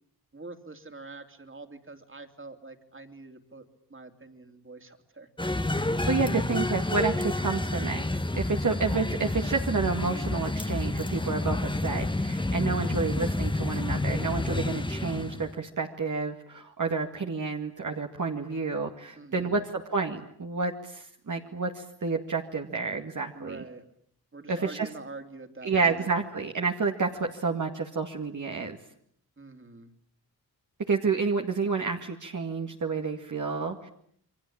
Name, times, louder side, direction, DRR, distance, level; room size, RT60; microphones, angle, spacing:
voice 1, 0.3-3.6 3.9-5.3 19.2-19.5 23.3-23.8 24.3-26.1 29.4-29.9, right 3 dB, 30° right, 7 dB, 3.2 m, -45 dB
sound 1, 5.4-15.5, left 2 dB, 15° left, 1.4 m, -29 dB
voice 2, 6.1-8.0 8.3-23.6 24.5-24.9 25.6-28.8 30.9-33.9, right 4 dB, 50° right, 2 dB, 2.2 m, -30 dB
28.5 x 23.0 x 8.8 m, 0.66 s
cardioid pair, 75°, 38 cm